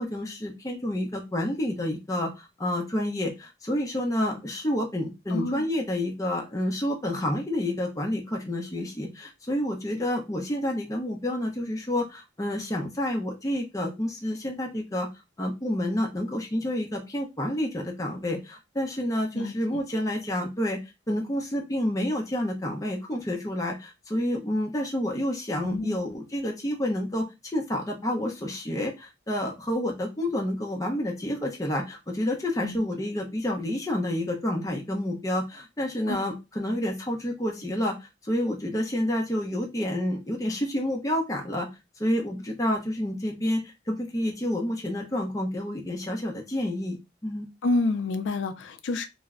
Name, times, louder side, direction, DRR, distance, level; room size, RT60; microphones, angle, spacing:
voice 1, 0.0-15.1 15.4-20.8 21.1-38.0 38.2-41.7 42.0-47.0 47.2-47.5, left 1 dB, 20° left, 0.5 m, -29 dB
voice 2, 5.3-5.6 19.3-19.8 25.6-26.0 32.6-32.8 36.1-36.2 47.6-49.1, left 2 dB, 90° left, 0.4 m, -28 dB
2.2 x 2.0 x 3.5 m
head